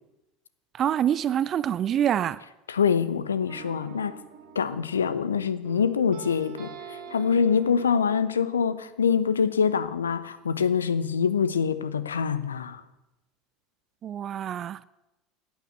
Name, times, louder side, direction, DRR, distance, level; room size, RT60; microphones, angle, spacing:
voice 1, 0.8-2.4 14.0-14.8, right 10 dB, 35° right, 0.4 m, -26 dB
voice 2, 2.7-4.2 4.5-12.8, left 6 dB, 75° left, 0.7 m, -25 dB
sound 1, 3.5-5.4 5.6-8.8, right 7 dB, 55° right, 2.5 m, -44 dB
11.0 x 9.7 x 8.0 m
figure-of-eight pair, 70°, 0 cm